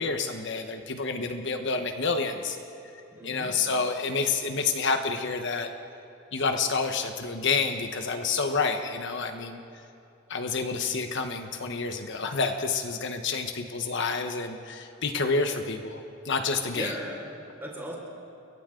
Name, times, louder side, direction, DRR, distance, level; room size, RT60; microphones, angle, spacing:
voice 1, 0.0-2.6 3.2-5.7 6.3-9.6 10.3-16.9, left 4 dB, 60° left, 6 dB, 1.1 m, -29 dB
voice 2, 3.1-3.5 16.7-17.9, equal, 10° right, -3 dB, 5.0 m, -37 dB
29.5 x 23.0 x 3.8 m, 2.8 s
head